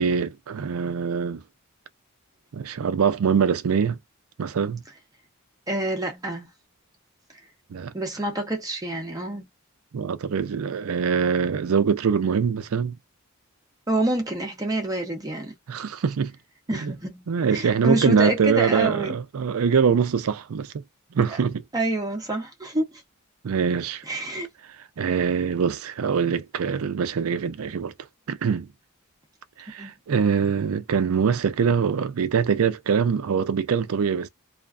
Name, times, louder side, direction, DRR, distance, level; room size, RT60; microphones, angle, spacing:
voice 1, 0.0-1.4 2.5-4.0 4.4-4.8 7.7-7.9 9.9-13.0 15.7-16.3 16.8-16.9 17.3-20.8 21.1-21.6 23.4-24.0 25.0-27.9 28.3-28.7 29.6-34.3, right 6 dB, 80° right, 0.4 m, -23 dB
voice 2, 5.7-6.5 7.9-9.5 13.9-15.5 16.7-19.2 21.3-21.4 21.7-23.0 24.1-24.5 29.8-29.9, right 1 dB, 15° right, 0.6 m, -27 dB
2.4 x 2.2 x 2.4 m
head